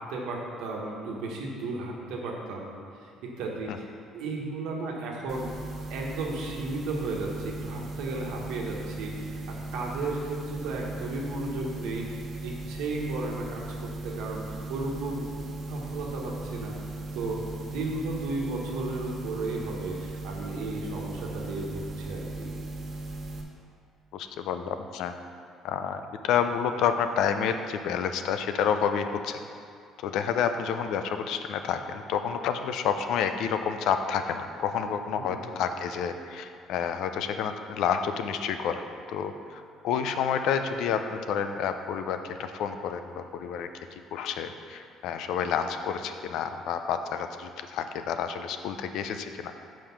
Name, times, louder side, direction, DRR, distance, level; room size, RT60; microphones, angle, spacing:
voice 1, 0.0-2.7 3.0-3.8 4.1-5.5 5.9-15.3 15.7-17.4 17.7-22.6 35.2-35.5, right 2 dB, 85° right, -1 dB, 1.2 m, -34 dB
sound 1, 5.3-23.4, right 2 dB, 55° right, 1.1 m, -37 dB
voice 2, 24.1-25.1 25.6-29.4 30.0-38.8 39.1-43.7 44.1-49.5, left 7 dB, 75° left, 8 dB, 0.4 m, -29 dB
5.6 x 5.1 x 5.8 m, 2.3 s
cardioid pair, 100°, 0 cm